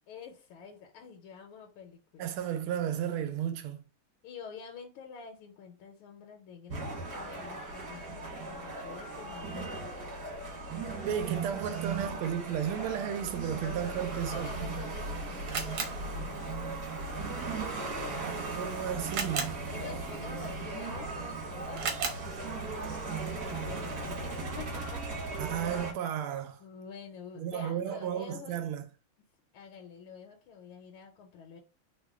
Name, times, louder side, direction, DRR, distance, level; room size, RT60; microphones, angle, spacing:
voice 1, 0.1-2.4 4.2-9.7 14.3-16.9 19.7-22.0 22.5-25.4 26.6-28.6 29.5-31.6, left 6 dB, 85° left, 1.4 m, -48 dB
voice 2, 2.2-3.8 11.0-14.6 18.2-19.5 25.4-26.6 27.4-28.9, right 9 dB, 90° right, 1.5 m, -34 dB
sound 1, 6.7-25.9, right 3 dB, 50° right, 1.6 m, -37 dB
Camera, 14.5-24.4, right 5 dB, 70° right, 1.4 m, -41 dB
3.5 x 2.1 x 3.4 m
omnidirectional pair, 2.3 m